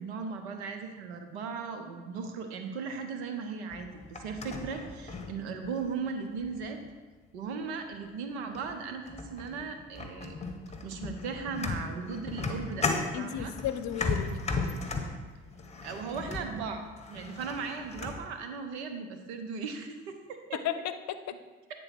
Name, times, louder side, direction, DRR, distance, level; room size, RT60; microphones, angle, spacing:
voice 1, 0.0-6.8 7.3-10.3 10.8-12.9 13.2-13.5 15.8-16.8 17.1-20.6, right 5 dB, 85° right, 6 dB, 0.9 m, -37 dB
sound 1, 3.7-5.9 6.4-6.9 7.9-8.0 8.5-8.8 9.1-18.3, left 3 dB, 20° left, 1.3 m, -36 dB
voice 2, 13.1-14.5 20.5-21.4, left 10 dB, 60° left, 11 dB, 0.7 m, -34 dB
9.0 x 3.9 x 5.9 m, 1.3 s
hypercardioid pair, 60°, 32 cm